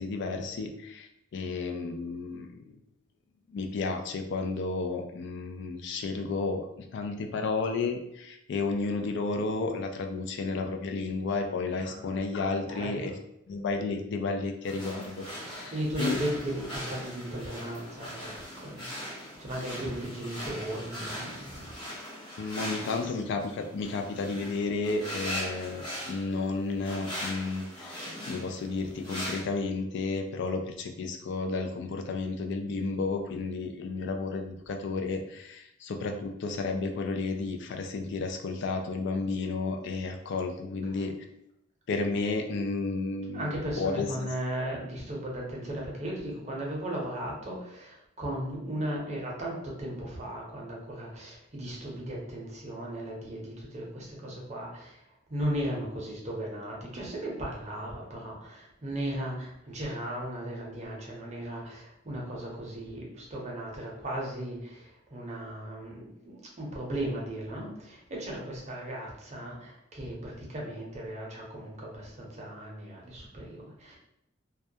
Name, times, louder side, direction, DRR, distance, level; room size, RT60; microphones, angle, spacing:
voice 1, 0.0-2.8 3.5-13.1 13.5-16.2 22.4-41.1 41.9-43.5 43.8-44.3, left 3 dB, 60° left, 5 dB, 0.3 m, -32 dB
voice 2, 11.8-12.2 12.6-13.1 15.5-21.7 43.3-55.0 55.3-74.0, right 1 dB, 35° right, -3 dB, 0.6 m, -36 dB
sound 1, 14.6-29.4, equal, 20° left, 0.9 m, -40 dB
2.2 x 2.1 x 2.6 m, 0.78 s
head